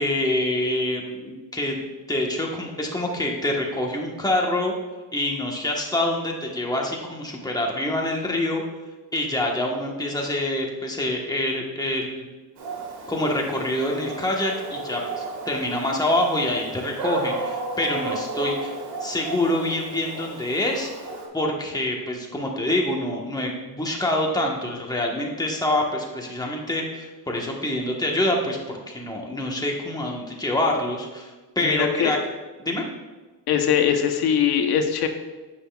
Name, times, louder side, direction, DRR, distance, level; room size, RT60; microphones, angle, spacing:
voice 1, 0.0-1.8 2.1-4.7 5.1-8.6 9.1-12.2 13.1-18.7 19.0-20.9 21.3-31.3 31.5-32.2 32.6-32.8, left 1 dB, 10° left, 0 dB, 1.2 m, -26 dB
Dog, 12.6-21.3, right 3 dB, 70° right, 1.7 m, -33 dB
voice 2, 31.6-32.1 33.5-35.1, left 8 dB, 65° left, 6 dB, 1.0 m, -21 dB
9.6 x 7.9 x 2.3 m, 1.3 s
cardioid pair, 145°, 40 cm